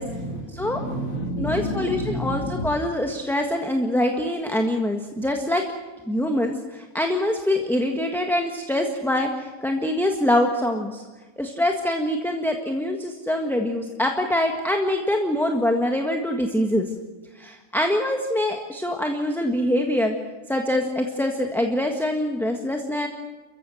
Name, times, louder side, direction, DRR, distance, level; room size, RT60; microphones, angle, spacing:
voice 1, 0.0-2.8, equal, 75° left, 1 dB, 3.2 m, -29 dB
voice 2, 1.4-5.6 6.1-11.0 11.4-16.9 17.4-20.1 20.5-23.1, left 1 dB, ahead, 3 dB, 1.5 m, -24 dB
30.0 x 15.0 x 7.8 m, 1.3 s
omnidirectional pair, 1.4 m